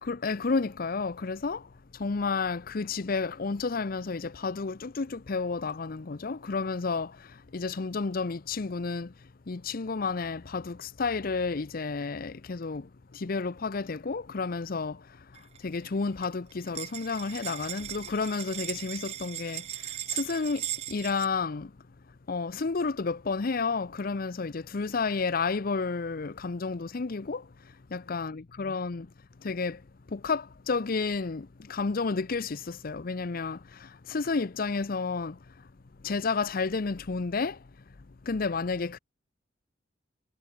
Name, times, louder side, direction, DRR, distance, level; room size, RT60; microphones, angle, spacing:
voice 1, 0.0-21.7 22.3-29.1 29.4-35.7 36.0-37.7 38.2-39.0, left 4 dB, 50° left, 0.6 m, -31 dB
sound 1, 15.4-15.9 16.2-16.3 16.5-21.3, right 12 dB, 35° right, 0.3 m, -38 dB
head